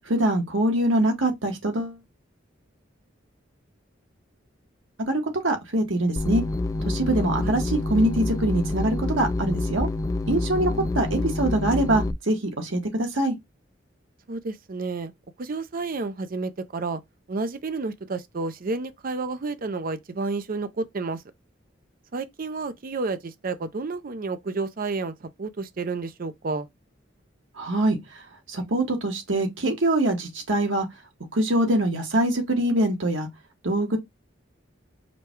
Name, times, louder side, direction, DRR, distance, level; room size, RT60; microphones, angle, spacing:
voice 1, 0.1-2.0 5.1-6.4 6.8-9.9 10.3-10.7 10.9-13.3 27.6-28.0 28.5-30.9 31.3-33.3 33.6-34.0, right 1 dB, 80° right, 1.4 m, -24 dB
sound 1, 6.2-12.1, left 2 dB, 15° left, 0.4 m, -27 dB
voice 2, 10.5-10.9 14.3-15.1 15.4-17.0 17.3-21.2 22.1-26.7, right 3 dB, 50° right, 0.5 m, -31 dB
5.0 x 2.3 x 4.4 m
head